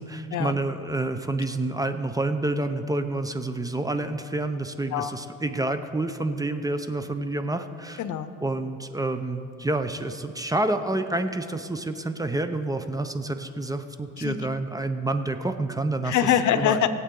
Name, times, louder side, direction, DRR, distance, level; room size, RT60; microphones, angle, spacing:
voice 1, 0.0-8.0 8.4-16.1 16.5-16.8, right 2 dB, 10° right, 9 dB, 0.7 m, -28 dB
voice 2, 8.0-8.3 14.2-14.4 16.0-16.9, left 10 dB, 75° left, 12 dB, 0.7 m, -23 dB
19.5 x 8.0 x 3.8 m, 2.6 s
cardioid pair, 90°, 30 cm